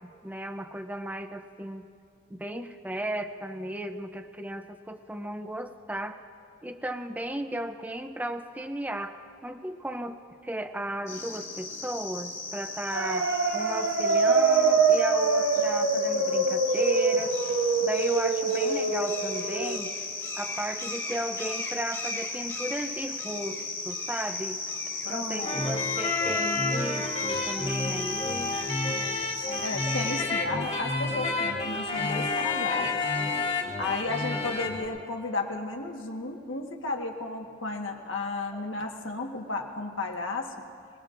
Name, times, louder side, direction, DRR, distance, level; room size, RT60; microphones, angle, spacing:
voice 1, 0.2-1.8 2.3-6.2 6.6-9.2 9.4-17.4 17.8-19.9 20.4-24.6 25.1-28.6 38.5-38.6, right 1 dB, 10° right, 8 dB, 0.5 m, -35 dB
sound 1, 11.1-30.2, left 3 dB, 15° left, 1.4 m, -35 dB
sound 2, 12.9-19.8, right 4 dB, 65° right, 1.0 m, -24 dB
voice 2, 25.0-25.6 29.4-33.0 33.8-40.5, left 3 dB, 70° left, 2 dB, 1.4 m, -33 dB
sound 3, 25.4-34.8, left 3 dB, 35° left, 1.6 m, -30 dB
25.5 x 19.5 x 2.5 m, 2.4 s
head